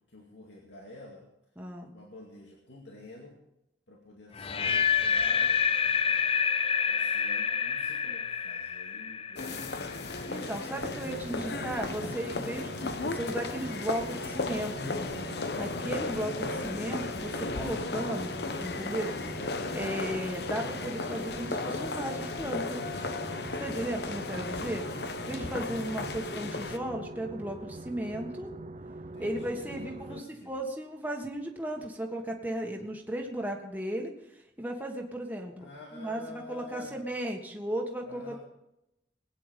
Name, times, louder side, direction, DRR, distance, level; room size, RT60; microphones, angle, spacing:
voice 1, 0.1-1.3 1.9-3.4 3.9-5.6 6.8-12.0 24.0-24.4 25.2-25.6 29.1-30.6 35.6-37.0 38.0-38.4, left 1 dB, 80° left, -1 dB, 2.3 m, -49 dB
voice 2, 1.6-1.9 10.3-14.7 15.6-19.1 19.7-22.8 23.6-24.8 25.3-28.5 29.2-34.1 34.6-35.7 35.9-38.4, right 1 dB, 10° right, 0 dB, 1.7 m, -35 dB
sound 1, 4.4-10.4, left 6 dB, 30° left, 0.6 m, -28 dB
sound 2, 9.4-26.8, left 3 dB, 65° left, 1.0 m, -35 dB
sound 3, 10.8-30.2, right 2 dB, 40° right, 0.6 m, -43 dB
20.5 x 9.3 x 5.2 m, 0.86 s
head